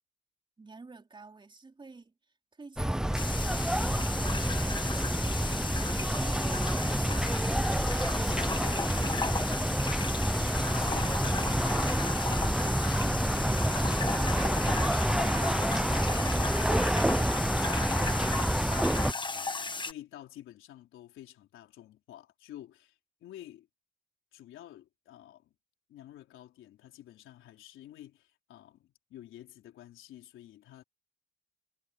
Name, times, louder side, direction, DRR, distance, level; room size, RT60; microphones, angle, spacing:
voice 1, 0.6-2.1 2.5-3.9 4.2-8.7, right 3 dB, 25° right, 3.6 m, -51 dB
sound 1, 2.8-19.1, right 1 dB, 5° right, 0.6 m, -28 dB
sound 2, 3.2-19.9, left 4 dB, 25° left, 1.4 m, -35 dB
voice 2, 10.7-23.7 24.3-25.6 25.9-30.8, left 12 dB, 85° left, 4.0 m, -50 dB
cardioid pair, 90°, 20 cm